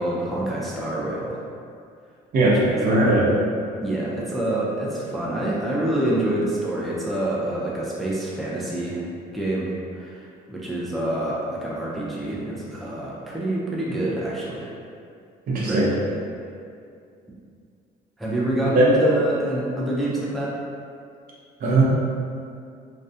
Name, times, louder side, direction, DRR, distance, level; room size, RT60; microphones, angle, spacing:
voice 1, 0.0-1.4 2.4-3.1 3.8-9.0 9.3-14.7 15.5-16.2 18.2-20.5, right 1 dB, ahead, -6 dB, 0.4 m, -27 dB
voice 2, 2.3-3.3 15.5-15.9 18.7-18.9 21.6-21.8, right 2 dB, 60° right, -6 dB, 0.7 m, -18 dB
2.3 x 2.1 x 2.6 m, 2.4 s
cardioid pair, 110°, 17 cm